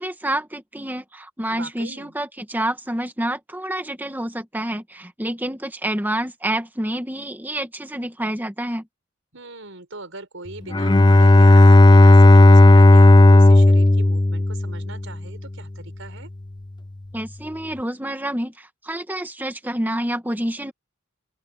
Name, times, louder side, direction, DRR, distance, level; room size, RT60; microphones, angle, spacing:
voice 1, 0.0-8.9 17.1-20.7, right 1 dB, 10° right, 1.8 m, -28 dB
voice 2, 1.5-2.1 9.3-16.3, right 3 dB, 65° right, 7.2 m, -39 dB
Bowed string instrument, 10.7-15.0, left 2 dB, 20° left, 0.6 m, -11 dB
open air
head